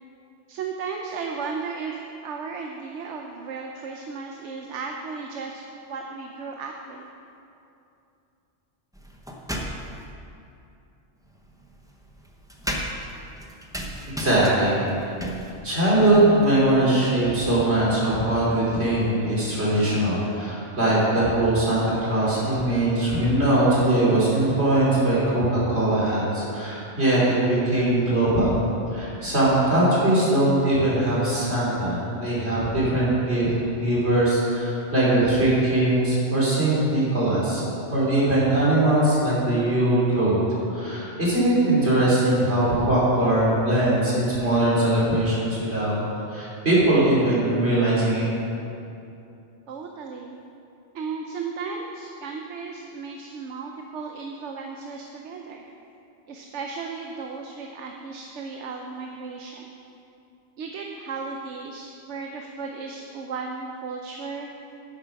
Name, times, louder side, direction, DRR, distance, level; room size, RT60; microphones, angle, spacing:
voice 1, 0.5-7.1 49.7-50.4 50.9-55.6 56.3-59.7 60.6-64.5, right 5 dB, 80° right, 2 dB, 1.0 m, -35 dB
sound 1, 8.9-10.1 11.2-19.9, equal, 5° right, 0.7 m, -37 dB
voice 2, 14.2-14.8 15.6-28.6 28.9-33.5 33.8-37.6 37.9-40.4 40.7-46.0 46.3-48.2, right 1 dB, 65° right, -7 dB, 3.3 m, -21 dB
9.9 x 7.5 x 5.9 m, 2.7 s
omnidirectional pair, 1.2 m